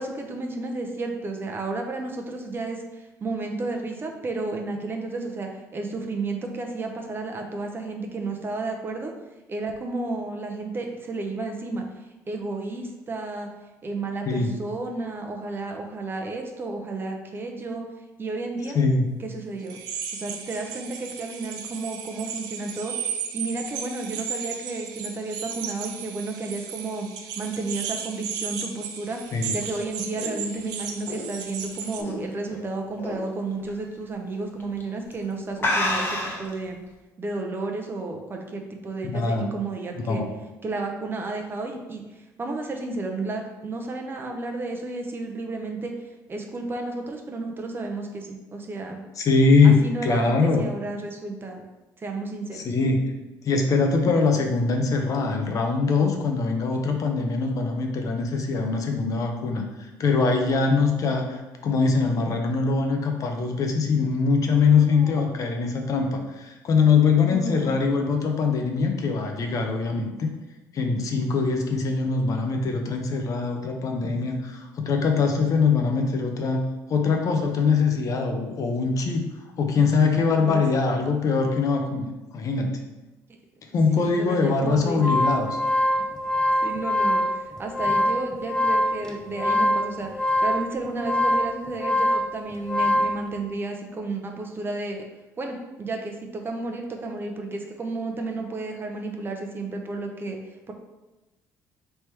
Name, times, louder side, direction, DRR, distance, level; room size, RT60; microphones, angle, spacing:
voice 1, 0.0-9.1 9.5-11.8 12.3-13.5 13.8-17.8 18.2-18.8 19.2-19.8 20.1-27.1 27.4-29.2 29.5-36.8 37.2-40.2 40.6-42.0 42.4-45.9 46.3-49.0 49.6-51.6 52.0-52.7 64.8-65.3 67.3-67.8 80.5-80.6 84.0-85.2 86.6-95.0 95.4-100.4 100.7-100.8, right 3 dB, 30° right, 2 dB, 0.7 m, -32 dB
voice 2, 18.7-19.1 29.3-29.6 39.0-39.5 40.0-40.3 49.2-50.6 52.5-53.0 53.4-70.3 70.7-76.6 76.9-79.3 79.6-82.7 83.7-85.5, left 4 dB, 50° left, 3 dB, 0.7 m, -22 dB
sound 1, 19.7-32.0, right 7 dB, 80° right, 0.5 m, -35 dB
sound 2, 29.4-32.6 33.0-33.3 33.7-33.8 34.6-34.8 35.1-35.2 35.6-36.5, left 1 dB, 30° left, 1.0 m, -28 dB
sound 3, 84.7-93.2, left 1 dB, 10° left, 0.7 m, -24 dB
3.4 x 2.9 x 4.6 m, 1.1 s
supercardioid pair, 85°, 7 cm